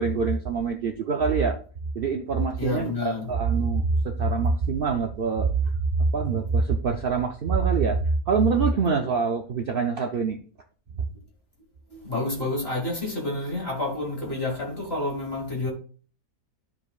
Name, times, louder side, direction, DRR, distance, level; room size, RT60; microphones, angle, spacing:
voice 1, 0.0-1.6 1.9-8.0 8.3-10.4 10.9-11.0, right 4 dB, 70° right, 0.5 m, -24 dB
voice 2, 2.6-3.3 11.9-15.7, left 2 dB, 40° left, 1.9 m, -29 dB
12.0 x 4.9 x 2.4 m
omnidirectional pair, 1.7 m